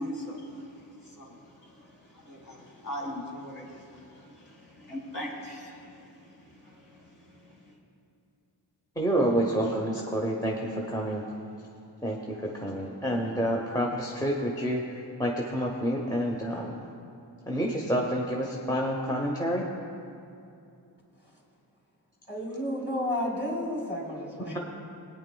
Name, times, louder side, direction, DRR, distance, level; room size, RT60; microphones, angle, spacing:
voice 1, 0.0-7.8, equal, 50° left, -3 dB, 2.2 m, -41 dB
voice 2, 9.0-11.2 12.0-14.8 15.2-16.9 17.5-19.6, equal, 10° left, -2 dB, 0.9 m, -28 dB
voice 3, 22.3-24.6, left 1 dB, 25° left, -2 dB, 2.7 m, -31 dB
20.5 x 8.9 x 2.3 m, 2.6 s
wide cardioid pair, 70°, 42 cm